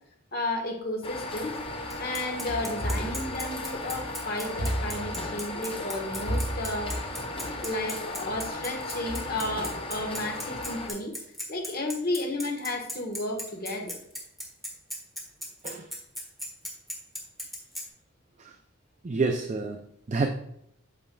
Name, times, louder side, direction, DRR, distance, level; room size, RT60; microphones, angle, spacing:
voice 1, 0.3-1.6 2.0-7.0 7.6-11.2 11.5-14.0, left 2 dB, 45° left, 2 dB, 1.2 m, -33 dB
sound 1, 1.0-10.9, left 2 dB, 25° left, 0.7 m, -36 dB
Bicycle, 1.9-17.8, equal, ahead, 1.4 m, -37 dB
sound 2, 2.8-3.9 4.6-5.6 6.3-7.4, right 1 dB, 60° right, 2.0 m, -33 dB
voice 2, 19.0-20.3, right 3 dB, 35° right, 5 dB, 0.4 m, -29 dB
8.5 x 6.3 x 2.3 m, 0.77 s
head